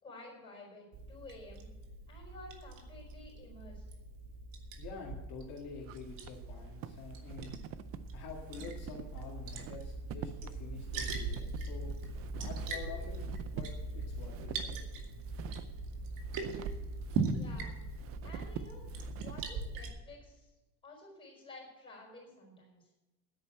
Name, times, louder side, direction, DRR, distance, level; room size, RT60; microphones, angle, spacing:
voice 1, 0.0-1.7 2.1-3.8 17.3-17.8 18.2-20.5 20.8-22.9, left 2 dB, 15° left, -2 dB, 4.8 m, -52 dB
Liquid, 0.9-19.9, right 3 dB, 75° right, 2.2 m, -40 dB
voice 2, 4.8-7.6 8.1-11.9 12.3-13.2 13.5-14.8, left 5 dB, 50° left, -2 dB, 2.0 m, -47 dB
sound 1, 5.5-19.5, right 10 dB, 40° right, 0.5 m, -48 dB
10.0 x 9.1 x 7.6 m, 1.1 s
cardioid pair, 180°, 34 cm